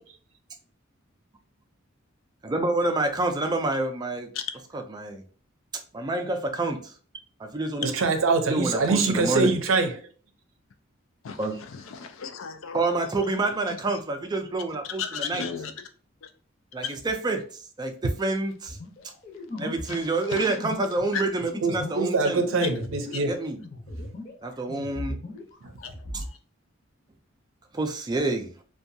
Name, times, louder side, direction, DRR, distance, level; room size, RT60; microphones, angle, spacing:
voice 1, 2.4-4.3 4.7-5.2 5.9-7.0 7.4-7.9 8.5-9.5 11.4-11.6 12.7-15.5 16.7-18.8 19.6-22.4 23.2-23.6 24.4-25.2 26.1-26.2 27.7-28.5, right 2 dB, 20° right, 0.4 m, -28 dB
voice 2, 7.8-10.0 21.6-23.4 25.6-25.7, right 3 dB, 75° right, 0.5 m, -24 dB
voice 3, 12.0-12.8 15.0-15.7 21.1-21.2 25.8-26.2, left 6 dB, 75° left, 0.4 m, -34 dB
sound 1, 18.7-24.4 24.7-26.3, left 2 dB, 40° left, 0.7 m, -38 dB
2.7 x 2.3 x 2.5 m
head